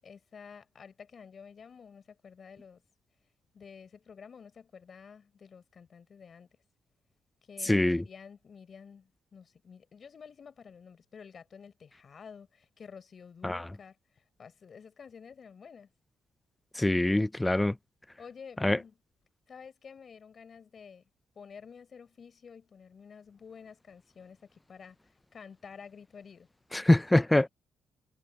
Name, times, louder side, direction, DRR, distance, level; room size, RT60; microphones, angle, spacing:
voice 1, 0.0-2.8 3.5-6.5 7.5-14.0 14.4-15.9 18.2-19.0 19.5-21.0 21.3-25.0 25.3-26.5, left 6 dB, 45° left, 4.8 m, -50 dB
voice 2, 7.6-8.0 13.4-13.6 16.8-17.7 18.6-18.8 26.7-27.5, left 1 dB, 10° left, 0.3 m, -24 dB
cardioid pair, 90°, 0 cm